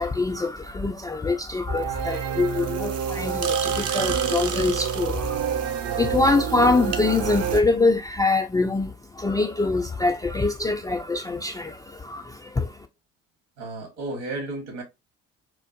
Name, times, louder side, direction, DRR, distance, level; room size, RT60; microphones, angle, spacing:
voice 1, 0.0-5.5 5.8-12.9, left 3 dB, 10° left, 0.3 m, -24 dB
sound 1, 1.7-7.6, right 7 dB, 45° right, 0.6 m, -27 dB
voice 2, 13.6-14.8, right 2 dB, 65° right, 1.4 m, -33 dB
4.3 x 2.4 x 2.4 m
figure-of-eight pair, 45°, 38 cm